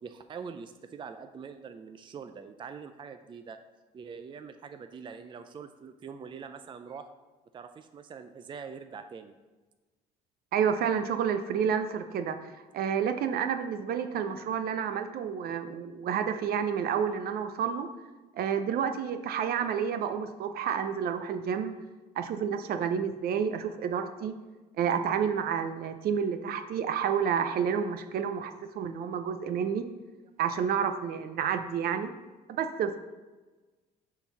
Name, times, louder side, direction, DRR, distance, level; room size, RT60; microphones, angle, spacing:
voice 1, 0.0-3.6 3.9-7.1 7.5-9.4, right 6 dB, 30° right, 8 dB, 0.4 m, -44 dB
voice 2, 10.5-12.4 12.7-17.9 18.4-21.7 22.2-24.3 24.8-29.9 30.4-32.1 32.6-33.0, right 7 dB, 65° right, 8 dB, 0.6 m, -29 dB
6.8 x 3.9 x 6.0 m, 1.2 s
cardioid pair, 110°, 17 cm